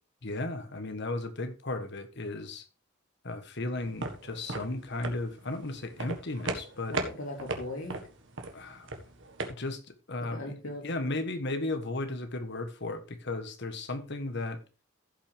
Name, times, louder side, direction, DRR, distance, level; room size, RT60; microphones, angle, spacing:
voice 1, 0.2-2.7 3.2-7.0 8.5-8.9 9.5-14.6, left 2 dB, 55° left, 1.3 m, -35 dB
sound 1, 3.8-9.5, right 3 dB, 65° right, 1.6 m, -37 dB
voice 2, 6.9-8.0 10.2-11.2, left 1 dB, 85° left, 3.4 m, -39 dB
15.5 x 5.8 x 3.5 m
head